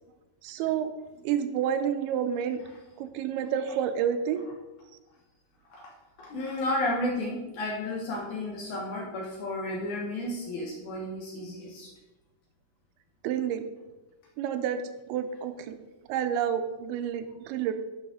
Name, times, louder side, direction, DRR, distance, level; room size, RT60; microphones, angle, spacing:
voice 1, 0.4-0.9 1.2-2.6 3.0-4.4 13.2-13.7 14.4-14.8 15.1-15.8 16.1-17.7, right 9 dB, 85° right, 9 dB, 2.5 m, -29 dB
voice 2, 6.2-11.9, left 1 dB, 65° left, -2 dB, 2.1 m, -32 dB
11.0 x 5.1 x 3.7 m, 1.1 s
omnidirectional pair, 4.5 m